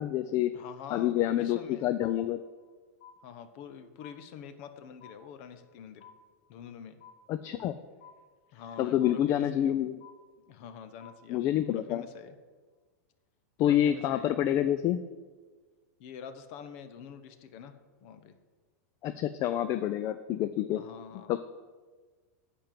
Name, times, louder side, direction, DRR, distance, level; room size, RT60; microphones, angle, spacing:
voice 1, 0.0-0.5 0.9-2.4 7.3-7.8 8.8-10.0 11.3-12.0 13.6-15.0 19.0-20.8 21.3-21.4, left 11 dB, 35° left, 11 dB, 0.4 m, -27 dB
voice 2, 0.5-1.9 3.2-6.1 6.5-7.0 8.5-9.8 10.5-11.4 11.7-12.4 13.6-14.4 16.0-17.7 18.0-18.4 20.8-21.4, left 7 dB, 55° left, 10 dB, 0.9 m, -46 dB
sound 1, 2.0-2.7 3.0-3.7 4.0-4.7 5.0-5.7 6.0-6.7 7.0-7.7 8.0-8.7 9.0-9.7 10.0-10.7 11.0-11.7, left 8 dB, 75° left, 2.9 m, -55 dB
10.5 x 4.5 x 7.5 m, 1.4 s
supercardioid pair, 140°, 8 cm